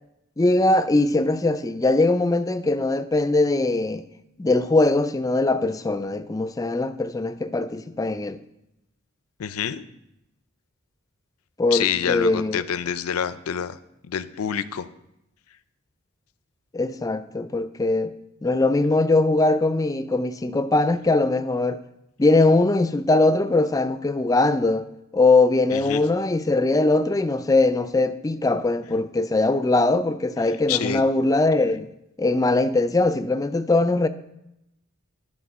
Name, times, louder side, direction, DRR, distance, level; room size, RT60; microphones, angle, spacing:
voice 1, 0.4-4.0 4.4-8.4 11.6-12.6 16.7-18.1 18.4-21.8 22.2-24.9 25.1-31.9 32.2-34.1, left 2 dB, 15° left, 0.3 m, -21 dB
voice 2, 9.4-9.8 11.7-13.8 14.1-14.9 25.7-26.0 30.7-31.0, left 8 dB, 85° left, 0.5 m, -27 dB
11.0 x 4.2 x 6.0 m
head